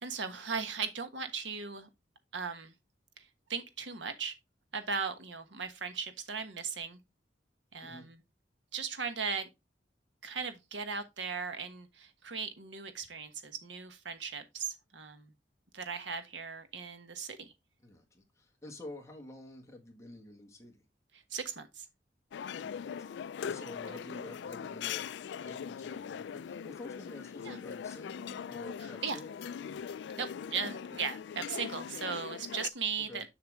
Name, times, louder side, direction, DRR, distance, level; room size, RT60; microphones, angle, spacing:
voice 1, 0.0-1.9 2.3-2.7 3.2-4.3 4.7-7.0 7.7-8.2 8.7-9.5 10.2-15.3 15.7-17.5 21.1-21.9 27.4-27.6 28.8-29.2 30.2-33.3, right 5 dB, 85° right, 1.3 m, -38 dB
voice 2, 17.8-20.8 22.6-25.1 25.4-29.8 33.1-33.2, left 1 dB, 15° left, 1.8 m, -49 dB
sound 1, 22.3-32.7, left 7 dB, 70° left, 0.3 m, -41 dB
7.3 x 5.8 x 3.5 m
head